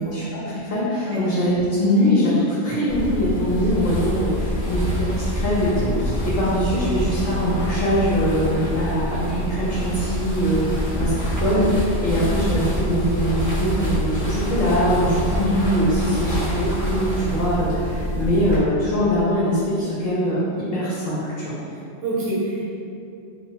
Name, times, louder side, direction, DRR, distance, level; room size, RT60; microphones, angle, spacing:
voice 1, 0.0-21.6, equal, 60° left, -8 dB, 0.8 m, -22 dB
hand under sheet brush, 2.9-18.6, equal, 25° right, 0.4 m, -26 dB
voice 2, 22.0-22.7, right 1 dB, 80° right, -7 dB, 1.2 m, -26 dB
4.5 x 2.0 x 2.2 m, 2.5 s
omnidirectional pair, 1.2 m